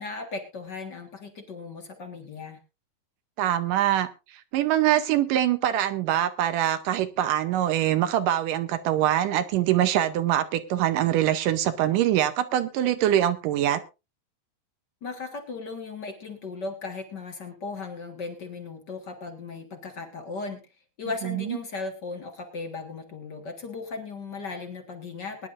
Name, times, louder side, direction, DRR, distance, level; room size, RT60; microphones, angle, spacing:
voice 1, 0.0-2.6 15.0-20.6 21.0-25.5, left 4 dB, 45° left, 5 dB, 1.5 m, -37 dB
voice 2, 3.4-4.1 4.5-13.8 21.3-21.4, right 12 dB, 75° right, 10 dB, 2.3 m, -23 dB
22.0 x 10.5 x 2.5 m, 0.27 s
omnidirectional pair, 4.0 m